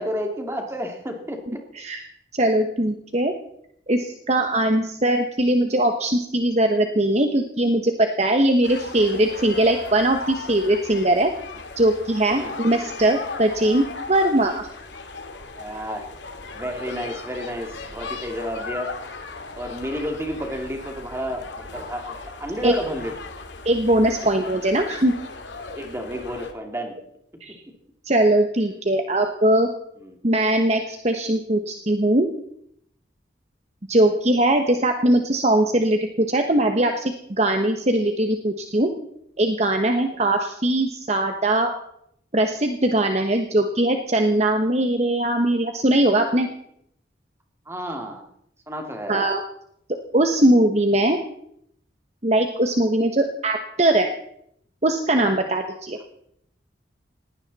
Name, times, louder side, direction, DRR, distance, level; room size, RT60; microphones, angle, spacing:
voice 1, 0.0-1.6 12.3-12.5 15.6-16.1 16.5-18.9 19.5-23.2 25.7-27.0 30.0-30.1 47.7-48.3 48.7-49.2, equal, 15° right, 3 dB, 2.6 m, -31 dB
voice 2, 1.5-2.0 2.4-3.3 3.9-11.3 11.8-14.7 22.6-22.8 23.6-25.1 27.4-27.6 28.1-29.7 30.2-32.3 33.9-38.9 39.4-41.7 42.3-46.5 49.1-49.4 50.1-51.2 52.2-54.1 54.8-56.0, right 1 dB, 35° right, 5 dB, 1.1 m, -20 dB
sound 1, 8.6-26.5, left 3 dB, 80° left, 2.2 m, -37 dB
19.5 x 16.5 x 4.2 m, 0.72 s
head